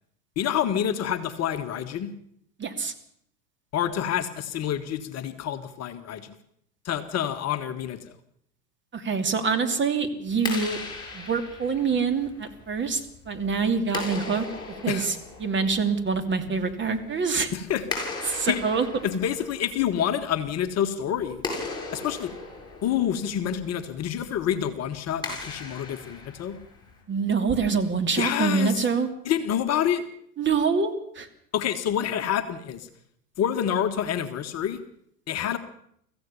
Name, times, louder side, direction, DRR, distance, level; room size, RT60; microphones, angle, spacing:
voice 1, 0.4-2.1 3.7-6.4 6.9-8.1 14.9-15.1 17.5-17.9 18.3-18.6 19.0-21.4 21.9-22.3 22.8-26.6 28.2-28.9 29.3-30.1 31.5-32.9 33.4-34.8 35.3-35.6, left 9 dB, 35° left, 7 dB, 1.6 m, -27 dB
voice 2, 2.6-2.9 8.9-10.8 11.1-14.4 14.8-15.1 15.4-17.5 18.2-18.9 27.1-29.1 30.4-31.3, right 5 dB, 25° right, 7 dB, 3.0 m, -25 dB
Clapping, 10.3-27.0, left 3 dB, 10° left, 7.9 m, -39 dB
24.5 x 15.5 x 7.1 m, 0.70 s
hypercardioid pair, 95°, 47 cm